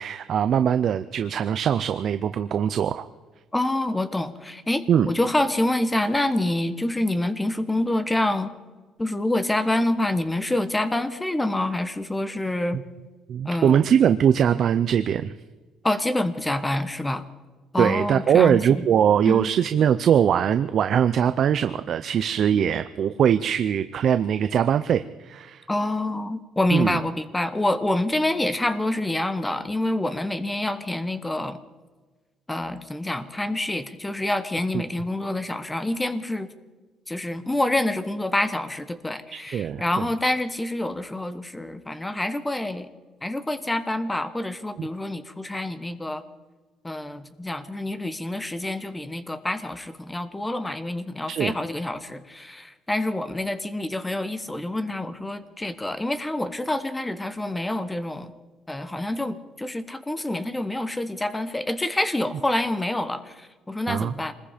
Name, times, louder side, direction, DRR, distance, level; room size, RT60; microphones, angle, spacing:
voice 1, 0.0-3.1 4.9-5.1 13.3-15.3 17.8-25.6 26.7-27.0 39.3-40.1 44.8-44.9 51.3-51.5 63.9-64.1, right 8 dB, 40° right, 11 dB, 0.5 m, -21 dB
voice 2, 3.5-8.5 9.0-12.8 13.4-13.8 15.8-17.2 17.7-18.8 19.2-19.5 25.7-31.6 32.5-36.5 37.1-42.9 43.2-46.2 46.8-58.3 58.7-64.3, left 1 dB, 10° left, 11 dB, 1.0 m, -27 dB
26.0 x 20.5 x 5.1 m, 1.3 s
cardioid pair, 170°, 0 cm